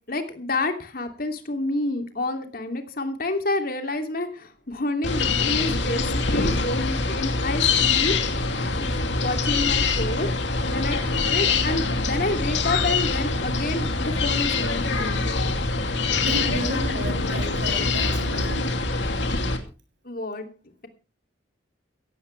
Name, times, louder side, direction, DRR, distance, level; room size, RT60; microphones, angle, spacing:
voice 1, 0.1-8.1 8.8-10.3 10.7-15.3 20.0-20.5, left 2 dB, 50° left, 6 dB, 2.8 m, -29 dB
sound 1, 5.0-19.6, left 4 dB, 70° left, 2.7 m, -24 dB
voice 2, 16.3-18.7, right 1 dB, 70° right, 4 dB, 7.7 m, -33 dB
17.0 x 16.0 x 3.4 m, 0.33 s
head